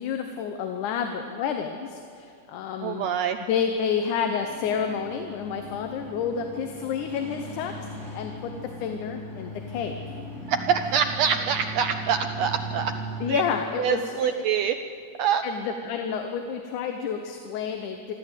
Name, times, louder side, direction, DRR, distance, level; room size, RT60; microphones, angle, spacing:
voice 1, 0.0-3.1 3.5-8.5 8.8-9.9 13.2-14.3 15.4-18.1, left 7 dB, 80° left, 5 dB, 2.4 m, -30 dB
voice 2, 2.8-3.4 10.5-12.9 13.3-13.4 13.8-14.8 15.2-15.4, right 7 dB, 80° right, 8 dB, 1.5 m, -25 dB
sound 1, 4.4-13.3, right 1 dB, 20° left, 4.3 m, -38 dB
23.5 x 14.0 x 8.2 m, 2.4 s
omnidirectional pair, 3.6 m